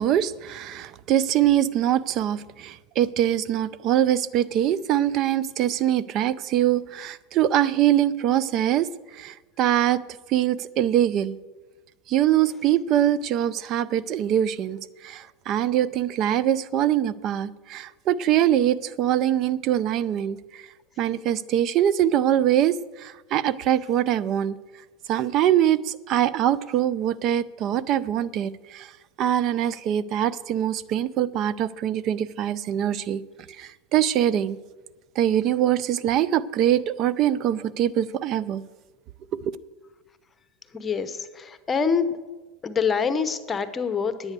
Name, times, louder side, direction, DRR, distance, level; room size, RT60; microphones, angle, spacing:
voice 1, 0.0-8.9 9.1-10.0 10.3-11.4 12.1-20.6 21.0-24.6 25.1-28.9 29.2-33.2 33.6-34.6 35.2-38.6, right 11 dB, 45° right, 19 dB, 0.5 m, -23 dB
voice 2, 40.7-42.2 42.6-44.3, left 6 dB, 20° left, 11 dB, 0.9 m, -26 dB
10.5 x 8.4 x 6.7 m, 1.2 s
supercardioid pair, 110°, 0 cm